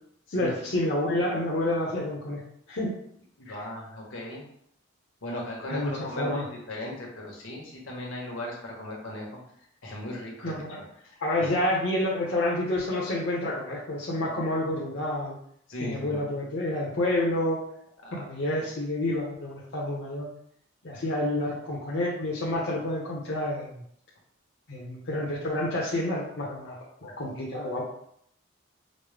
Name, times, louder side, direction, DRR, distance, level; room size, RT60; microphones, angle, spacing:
voice 1, 0.3-2.4 2.7-2.9 3.5-3.6 5.7-6.4 10.4-10.8 11.2-15.4 15.8-17.6 18.1-20.3 20.8-23.8 24.7-26.7 27.0-27.8, left 1 dB, 55° left, -6 dB, 0.8 m, -29 dB
voice 2, 3.4-4.4 5.2-9.3 9.8-10.6 11.0-11.5 14.3-14.4 15.7-16.2 18.0-18.3 18.5-18.6, left 1 dB, 75° left, -2 dB, 1.1 m, -37 dB
5.1 x 2.1 x 3.3 m, 0.69 s
head